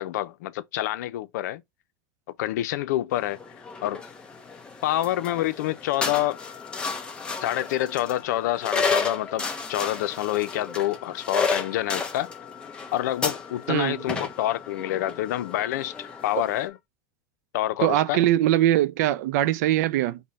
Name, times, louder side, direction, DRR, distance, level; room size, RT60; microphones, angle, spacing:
voice 1, 0.0-1.6 2.4-3.4 3.8-4.0 4.8-6.4 7.3-12.3 12.9-16.8 17.5-18.3, left 14 dB, 75° left, 0.6 m, -27 dB
sound 1, 3.1-16.7, left 4 dB, 10° left, 0.9 m, -33 dB
Wind instrument woodwind instrument, 6.1-16.8, left 10 dB, 35° left, 1.1 m, -47 dB
voice 2, 13.7-14.0 17.8-20.2, right 13 dB, 65° right, 0.4 m, -22 dB
5.4 x 2.2 x 4.0 m
supercardioid pair, 160°, 9 cm